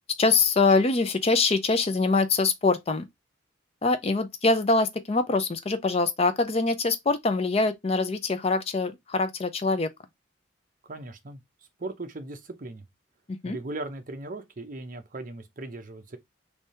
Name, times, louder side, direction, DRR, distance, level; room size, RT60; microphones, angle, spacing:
voice 1, 0.2-3.1 3.8-9.9 13.4-13.6, left 3 dB, 30° left, 0.5 m, -24 dB
voice 2, 10.8-11.4 11.8-12.8 13.4-16.2, right 2 dB, 45° right, 0.7 m, -38 dB
3.4 x 2.7 x 4.2 m
head